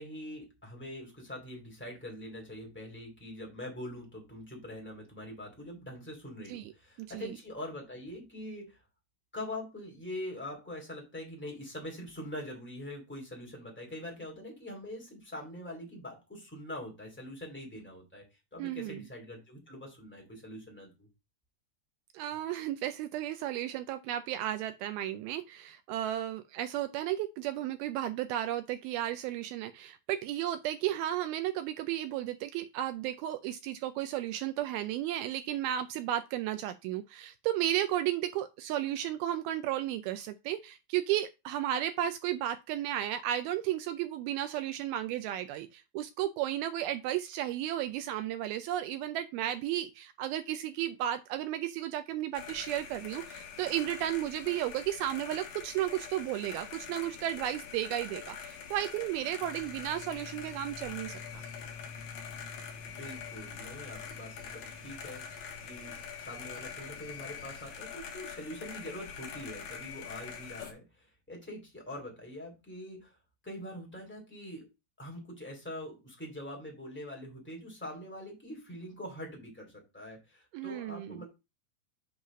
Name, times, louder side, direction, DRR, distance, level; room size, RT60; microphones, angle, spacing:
voice 1, 0.0-8.8 9.3-18.2 18.5-21.1 62.9-73.1 73.4-74.7 75.0-81.3, left 1 dB, 5° left, 1.2 m, -44 dB
voice 2, 7.0-7.3 18.6-19.1 22.1-61.4 80.5-81.3, right 12 dB, 85° right, 2.1 m, -34 dB
sound 1, 52.3-70.7, left 7 dB, 65° left, 2.4 m, -44 dB
sound 2, 59.4-67.8, left 4 dB, 35° left, 0.9 m, -51 dB
7.9 x 3.2 x 6.0 m
omnidirectional pair, 4.8 m